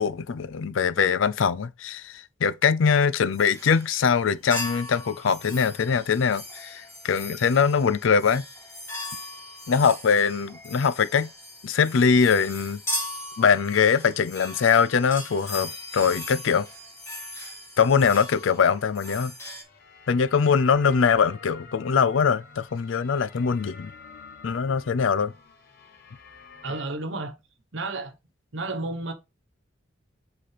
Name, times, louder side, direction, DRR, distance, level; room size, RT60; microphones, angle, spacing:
voice 1, 0.0-8.4 9.7-11.3 11.6-12.8 13.4-16.7 17.8-19.3 20.1-23.9 24.4-25.3, left 6 dB, 80° left, 0.4 m, -22 dB
sound 1, 3.3-4.1 4.5-19.6, left 1 dB, 15° left, 2.5 m, -38 dB
sound 2, 17.2-26.8, left 5 dB, 50° left, 1.2 m, -49 dB
voice 2, 26.6-27.3 27.7-28.2 28.5-29.1, right 2 dB, 70° right, 1.1 m, -31 dB
7.6 x 4.1 x 3.3 m
head